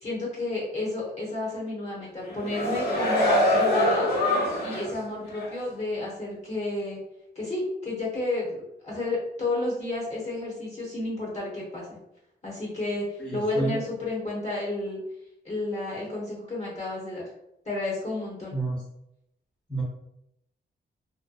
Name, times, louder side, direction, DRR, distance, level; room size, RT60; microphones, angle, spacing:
voice 1, 0.0-4.1 4.6-7.0 7.3-12.0 12.4-15.0 15.4-17.3 17.7-18.6, left 2 dB, 40° left, -4 dB, 0.9 m, -31 dB
sound 1, 2.2-4.9 5.4-5.5, left 1 dB, 60° left, 0.9 m, -24 dB
voice 2, 13.2-13.8 18.5-18.8 19.7-19.8, right 2 dB, 5° left, -7 dB, 0.6 m, -29 dB
2.7 x 2.1 x 2.3 m, 0.81 s
cardioid pair, 85°, 18 cm